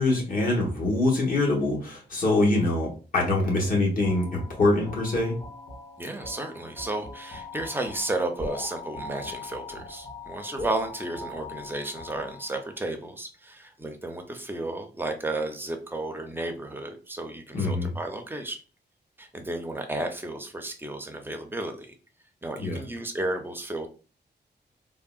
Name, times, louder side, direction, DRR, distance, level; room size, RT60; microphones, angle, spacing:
voice 1, 0.0-5.4 17.5-17.9 22.6-22.8, left 2 dB, 50° left, -2 dB, 1.1 m, -24 dB
sound 1, 4.0-12.8, left 2 dB, 35° left, 1.5 m, -40 dB
voice 2, 6.0-18.6 19.2-21.9 22.4-23.9, right 2 dB, 10° right, 4 dB, 0.4 m, -33 dB
3.5 x 2.1 x 2.3 m, 0.36 s
wide cardioid pair, 130°, 18 cm